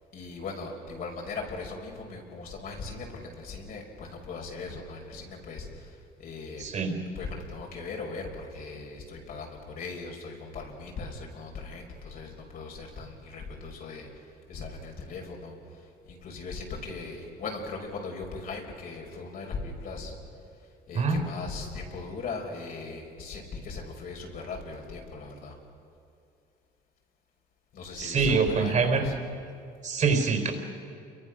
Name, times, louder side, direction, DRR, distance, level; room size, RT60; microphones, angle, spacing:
voice 1, 0.1-6.6 7.2-20.2 20.9-25.6 27.7-29.1, left 4 dB, 60° left, 0 dB, 5.6 m, -39 dB
voice 2, 6.6-7.0 20.9-21.2 27.9-29.0 29.8-30.5, right 5 dB, 45° right, 5 dB, 4.2 m, -25 dB
29.5 x 23.0 x 6.3 m, 2.4 s
cardioid pair, 110°, 17 cm